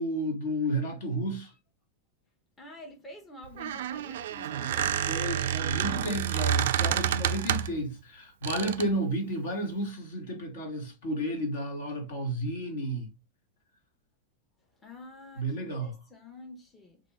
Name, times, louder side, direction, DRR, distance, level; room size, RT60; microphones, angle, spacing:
voice 1, 0.0-1.5 5.1-13.1 15.4-15.9, right 1 dB, 55° left, 1.4 m, -32 dB
voice 2, 2.6-4.9 14.8-17.0, left 1 dB, 15° left, 0.9 m, -48 dB
Squeak, 3.4-7.8 8.4-8.9, right 10 dB, 55° right, 0.3 m, -29 dB
4.2 x 2.6 x 3.1 m
figure-of-eight pair, 90°, 0 cm